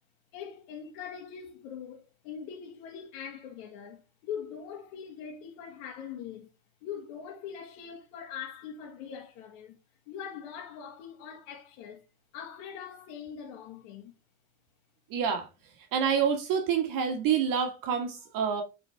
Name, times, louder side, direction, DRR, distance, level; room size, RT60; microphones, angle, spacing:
voice 1, 0.3-6.5 6.8-9.8 10.1-12.0 12.3-14.1, left 7 dB, 70° left, 1.7 m, -42 dB
voice 2, 15.1-15.5 15.9-18.6, right 7 dB, 55° right, 1.5 m, -27 dB
8.4 x 4.1 x 3.3 m
hypercardioid pair, 90°, 40 cm